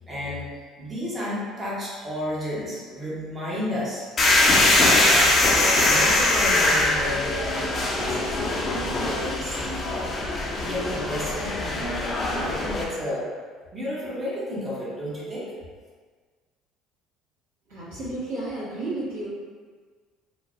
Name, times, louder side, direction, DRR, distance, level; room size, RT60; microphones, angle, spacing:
voice 1, 0.1-0.5 0.8-4.1 5.0-5.5 5.9-10.1 10.6-13.3 13.7-15.5, left 1 dB, 25° right, -7 dB, 0.9 m, -32 dB
sound 1, 4.2-12.8, left 2 dB, 40° left, 0.5 m, -22 dB
voice 2, 17.7-19.3, right 2 dB, 80° right, -11 dB, 1.1 m, -32 dB
3.0 x 2.0 x 2.4 m, 1.5 s
hypercardioid pair, 60°, 0 cm